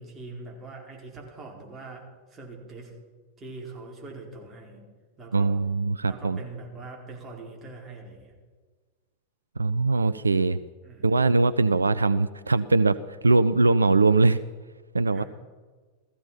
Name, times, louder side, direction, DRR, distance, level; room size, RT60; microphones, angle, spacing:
voice 1, 0.0-2.9 3.4-4.8 5.2-5.5 6.1-8.3 10.8-11.2 15.1-15.3, right 3 dB, 20° right, -1 dB, 4.5 m, -42 dB
voice 2, 5.3-6.4 9.6-10.6 11.0-14.4 14.9-15.2, right 3 dB, 80° right, 15 dB, 0.4 m, -21 dB
16.5 x 14.5 x 5.7 m, 1.4 s
figure-of-eight pair, 90°, 0 cm